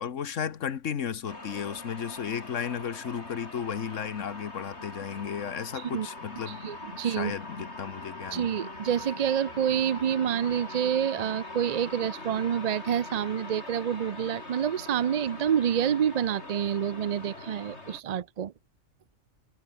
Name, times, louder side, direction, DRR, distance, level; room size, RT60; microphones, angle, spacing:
voice 1, 0.0-6.7 7.0-8.5, left 7 dB, 80° left, 1.6 m, -34 dB
sound 1, 1.3-18.0, left 2 dB, 60° left, 4.9 m, -42 dB
voice 2, 5.7-6.1 6.5-7.3 8.3-18.5, right 9 dB, 55° right, 0.4 m, -28 dB
omnidirectional pair, 1.3 m